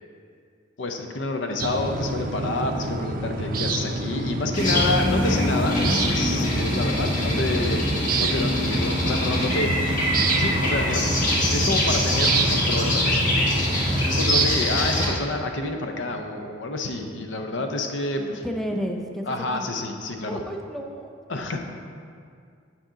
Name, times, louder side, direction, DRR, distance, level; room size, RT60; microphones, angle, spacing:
voice 1, 0.8-9.7 10.4-13.2 14.0-18.4 19.3-20.4 21.3-21.6, left 2 dB, 75° left, 4 dB, 0.6 m, -28 dB
sound 1, 1.6-14.5, right 3 dB, 50° right, 0.5 m, -28 dB
sound 2, 4.5-15.1, left 1 dB, 45° left, 1.3 m, -24 dB
voice 2, 14.7-15.3 18.2-19.7 20.3-21.6, equal, ahead, 2 dB, 0.5 m, -33 dB
8.8 x 4.9 x 3.8 m, 2.2 s
head